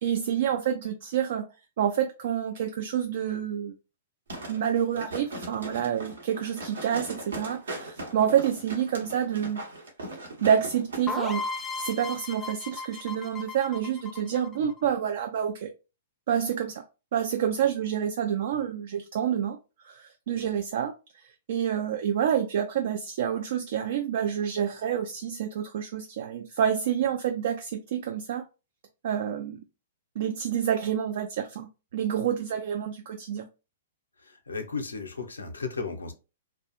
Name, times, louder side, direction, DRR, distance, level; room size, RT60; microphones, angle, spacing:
voice 1, 0.0-1.5 1.8-3.7 4.5-9.6 10.4-11.4 11.8-15.7 16.3-16.8 17.1-19.6 19.8-28.5 29.0-29.6 30.2-33.5, right 9 dB, 60° right, 0.3 m, -28 dB
sound 1, 4.3-11.0 11.4-11.5, right 2 dB, 75° right, 0.9 m, -39 dB
sound 2, 11.1-14.8, left 3 dB, 10° left, 0.4 m, -36 dB
voice 2, 34.2-36.1, left 4 dB, 85° left, 0.5 m, -35 dB
2.4 x 2.1 x 2.8 m
hypercardioid pair, 115°, 0 cm